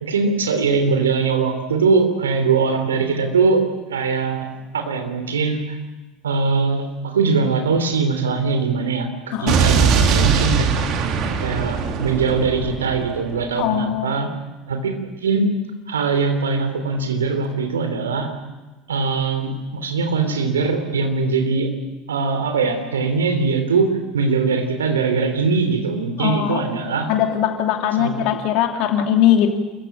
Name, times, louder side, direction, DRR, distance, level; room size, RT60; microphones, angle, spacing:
voice 1, 0.0-3.6 3.9-4.5 4.7-5.8 6.2-10.9 11.4-14.3 14.7-15.4 15.9-18.3 18.9-21.7 22.1-27.1 28.0-28.1, right 4 dB, 75° right, 6 dB, 3.2 m, -21 dB
Explosion, 9.5-13.5, right 6 dB, 50° right, 2.5 m, -20 dB
voice 2, 13.6-14.1 26.2-26.6 27.1-29.5, left 10 dB, 55° left, 4 dB, 3.0 m, -20 dB
28.0 x 15.0 x 8.9 m, 1.2 s
figure-of-eight pair, 70°, 0 cm